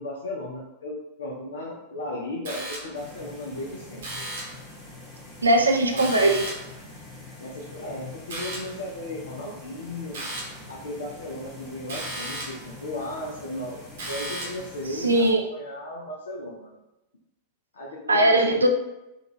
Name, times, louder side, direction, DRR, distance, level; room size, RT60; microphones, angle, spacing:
voice 1, 0.0-4.3 5.9-6.0 7.4-10.2 10.7-13.8 14.1-16.7 17.7-18.7, left 1 dB, 65° left, -3 dB, 0.5 m, -36 dB
sound 1, 2.5-3.1 4.0-4.7 6.0-6.8 8.3-8.8 10.1-10.7 11.9-12.7 14.0-14.7, right 1 dB, 60° right, 0.9 m, -35 dB
sound 2, 2.9-15.3, left 2 dB, 20° left, 1.3 m, -45 dB
voice 2, 5.4-6.4 15.0-15.4 18.1-18.7, right 1 dB, 75° right, 3 dB, 0.3 m, -19 dB
3.6 x 2.4 x 3.0 m, 0.94 s
figure-of-eight pair, 90°, 0 cm